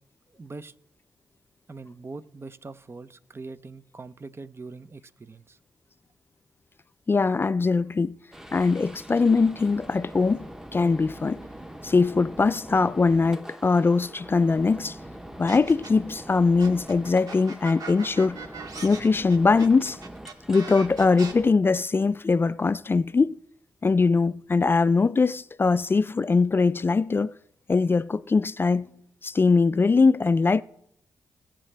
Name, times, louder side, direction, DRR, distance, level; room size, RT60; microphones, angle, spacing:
voice 1, 0.3-0.7 1.7-5.6, right 3 dB, 35° right, 0.8 m, -42 dB
voice 2, 7.1-8.2 8.5-11.4 11.8-15.0 15.4-18.4 18.8-20.0 20.5-23.4 23.8-27.4 27.7-28.9 29.2-30.6, left 4 dB, 35° left, 0.4 m, -22 dB
sound 1, 8.3-21.5, right 1 dB, 5° right, 1.0 m, -43 dB
sound 2, 15.5-16.1 16.6-21.3, right 4 dB, 65° right, 1.7 m, -40 dB
22.5 x 7.5 x 3.4 m
supercardioid pair, 45°, 7 cm